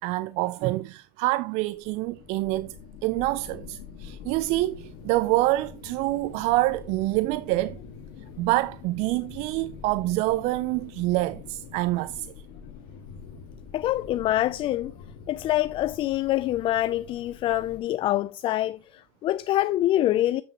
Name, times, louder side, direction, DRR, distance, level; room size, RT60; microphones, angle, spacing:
voice 1, 0.0-2.7 3.0-7.8 8.4-12.3, right 18 dB, 60° right, 0.4 m, -26 dB
sound 1, 1.7-17.8, left 6 dB, 75° left, 1.8 m, -45 dB
voice 2, 13.7-14.9 15.3-20.4, left 14 dB, 45° left, 0.3 m, -25 dB
8.1 x 7.0 x 2.9 m
supercardioid pair, 95°, 12 cm